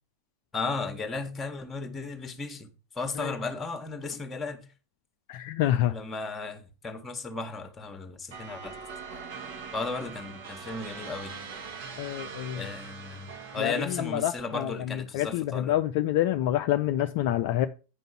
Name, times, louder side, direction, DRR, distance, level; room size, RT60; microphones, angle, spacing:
voice 1, 0.5-2.7 2.9-4.6 5.9-8.7 9.7-11.4 12.6-15.7, left 3 dB, 15° left, 1.4 m, -35 dB
voice 2, 5.3-5.9 12.0-12.7 13.6-17.7, left 13 dB, 50° left, 0.5 m, -27 dB
sound 1, 8.3-14.5, right 5 dB, 50° right, 1.6 m, -42 dB
9.0 x 5.3 x 5.6 m
figure-of-eight pair, 90°, 0 cm